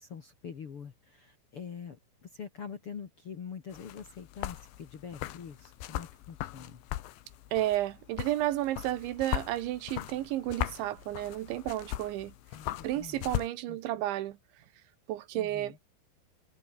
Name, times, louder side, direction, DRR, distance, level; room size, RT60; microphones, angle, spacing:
voice 1, 0.0-6.8 12.5-13.3 13.7-13.8 15.3-15.8, left 7 dB, 50° left, 1.8 m, -45 dB
sound 1, 3.7-13.5, left 15 dB, 90° left, 3.6 m, -39 dB
voice 2, 7.5-12.3 12.8-14.4 15.1-15.8, right 14 dB, 85° right, 3.8 m, -32 dB
omnidirectional pair, 5.2 m